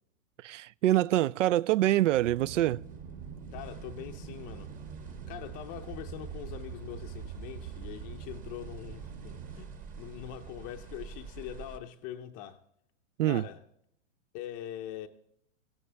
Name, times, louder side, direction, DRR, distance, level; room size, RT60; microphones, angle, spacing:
voice 1, 0.4-2.8 13.2-13.5, right 14 dB, 75° right, 0.5 m, -25 dB
Aircraft, 2.1-11.6, right 7 dB, 45° right, 2.4 m, -45 dB
sound 1, 2.8-11.8, right 5 dB, 20° right, 1.2 m, -49 dB
voice 2, 3.5-4.7 5.3-9.7 10.0-12.6 13.2-13.6 14.3-15.1, left 11 dB, 25° left, 0.5 m, -43 dB
18.0 x 16.0 x 3.3 m
hypercardioid pair, 140°, 37 cm